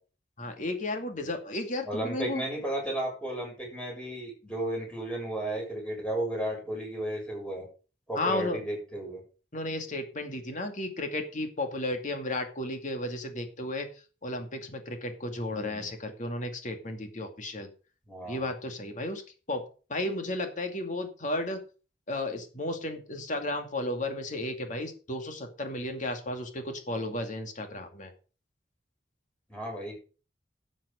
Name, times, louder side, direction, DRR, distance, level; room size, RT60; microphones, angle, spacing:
voice 1, 0.4-2.4 8.1-8.6 9.5-13.9 14.2-17.7 18.3-19.2 19.5-19.6 19.9-21.6 22.1-28.1, left 1 dB, 45° left, 5 dB, 2.4 m, -33 dB
voice 2, 1.9-7.7 8.1-9.2 15.5-15.9 18.1-18.5 29.5-30.0, right 1 dB, 5° left, -2 dB, 7.0 m, -34 dB
12.0 x 7.6 x 5.1 m, 0.36 s
head